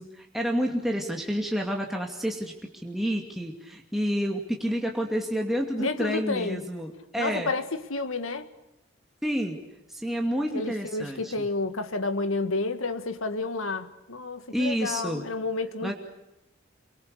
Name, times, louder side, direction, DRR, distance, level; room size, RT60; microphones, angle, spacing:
voice 1, 0.0-2.5 2.8-7.5 9.2-9.6 9.9-11.4 14.5-15.2 15.8-15.9, equal, ahead, 2.5 m, -29 dB
voice 2, 5.8-6.6 7.2-8.5 10.5-15.9, left 3 dB, 85° left, 1.9 m, -30 dB
28.0 x 24.0 x 6.6 m
head